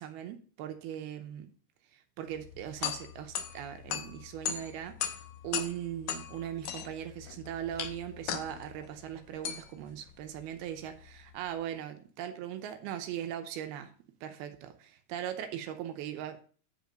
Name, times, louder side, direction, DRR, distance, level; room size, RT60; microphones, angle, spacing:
voice 1, 0.0-1.5 1.9-13.9 14.2-16.4, right 10 dB, 85° right, 2.7 m, -39 dB
sound 1, 2.3-11.5, left 9 dB, 80° left, 1.7 m, -39 dB
9.8 x 5.2 x 5.2 m
omnidirectional pair, 4.5 m